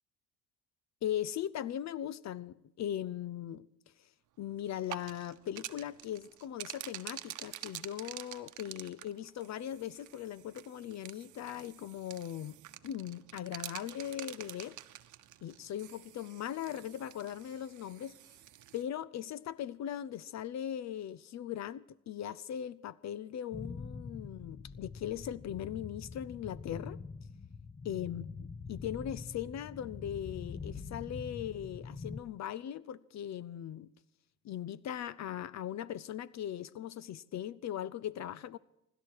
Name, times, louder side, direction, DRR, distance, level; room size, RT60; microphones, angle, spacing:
voice 1, 1.0-3.7 4.0-4.1 4.4-12.6 12.8-14.8 15.4-18.1 18.7-27.0 27.9-33.9 34.4-38.6, left 10 dB, 65° left, 0.6 m, -39 dB
sound 1, 4.7-18.8, right 14 dB, 80° right, 0.9 m, -48 dB
sound 2, 23.5-32.2, left 5 dB, 25° left, 0.9 m, -44 dB
24.0 x 12.0 x 4.7 m
cardioid pair, 90°, 30 cm